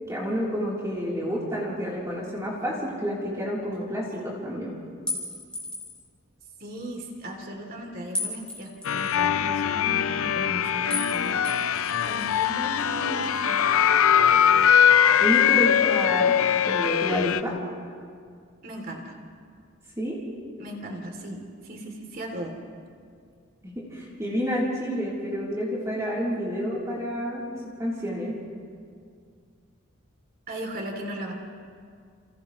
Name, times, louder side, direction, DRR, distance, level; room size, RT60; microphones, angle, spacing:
voice 1, 0.1-4.7 15.2-16.4 16.6-17.6 20.0-20.2 23.8-27.5 27.8-28.3, equal, 15° right, -7 dB, 3.5 m, -29 dB
sound 1, 5.1-6.0 8.1-9.1 10.9-11.1 11.4-12.4, left 2 dB, 5° left, 3.6 m, -34 dB
voice 2, 6.6-11.4 12.0-13.6 18.6-19.1 20.6-22.5 30.5-31.3, right 1 dB, 40° right, 2 dB, 2.9 m, -37 dB
sound 2, 8.8-17.4, left 8 dB, 75° left, 0.5 m, -21 dB
30.0 x 28.5 x 3.1 m, 2.2 s
head